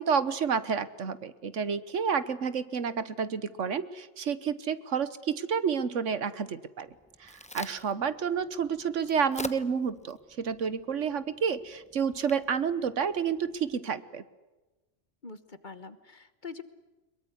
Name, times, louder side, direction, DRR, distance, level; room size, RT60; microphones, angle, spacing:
voice 1, 0.0-6.9 7.2-14.2, right 6 dB, 75° right, 15 dB, 1.5 m, -30 dB
Crack, 6.9-13.8, left 1 dB, 5° left, 0.9 m, -46 dB
voice 2, 15.2-16.6, left 5 dB, 40° left, 13 dB, 1.4 m, -44 dB
22.5 x 22.5 x 9.7 m, 1.1 s
omnidirectional pair, 1.3 m